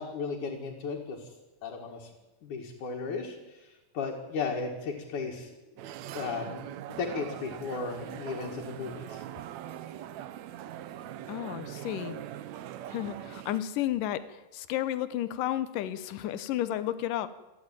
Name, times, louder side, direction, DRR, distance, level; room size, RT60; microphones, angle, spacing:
voice 1, 0.0-1.3 1.6-2.1 2.4-5.5 6.2-9.2, left 4 dB, 70° left, -1 dB, 3.5 m, -35 dB
sound 1, 5.8-13.6, right 11 dB, 70° right, 2.0 m, -41 dB
voice 2, 11.3-12.2 12.9-17.3, left 12 dB, 85° left, 13 dB, 2.6 m, -32 dB
28.5 x 11.0 x 9.1 m, 1.1 s
omnidirectional pair, 3.7 m